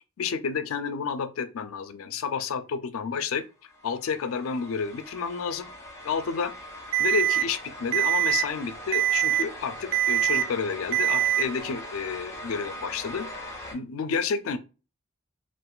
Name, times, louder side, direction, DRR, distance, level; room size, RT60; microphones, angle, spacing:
voice 1, 0.2-3.4 3.8-5.7 6.0-6.5 7.0-14.6, left 5 dB, 80° left, 0.4 m, -30 dB
sound 1, 3.7-13.7, equal, 15° left, 0.7 m, -41 dB
Alarm, 6.9-7.4 7.9-8.4 8.9-9.4 9.9-10.4 10.9-11.4, right 13 dB, 65° right, 0.4 m, -23 dB
2.5 x 2.3 x 3.7 m
head